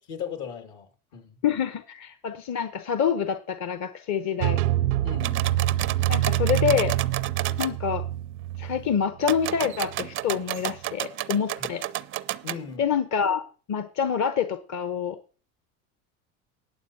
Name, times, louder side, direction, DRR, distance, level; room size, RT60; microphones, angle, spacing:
voice 1, 0.1-1.4 5.0-5.5 12.4-12.9, left 7 dB, 65° left, 2.3 m, -37 dB
voice 2, 1.4-4.6 6.1-7.0 7.6-8.1 8.6-11.8 12.8-15.2, left 7 dB, 40° left, 0.9 m, -26 dB
sound 1, 4.4-10.1, right 14 dB, 85° right, 0.5 m, -26 dB
sound 2, 5.2-7.7 9.2-12.6, right 14 dB, 30° right, 0.4 m, -32 dB
19.5 x 7.1 x 2.8 m
hypercardioid pair, 80°, 44 cm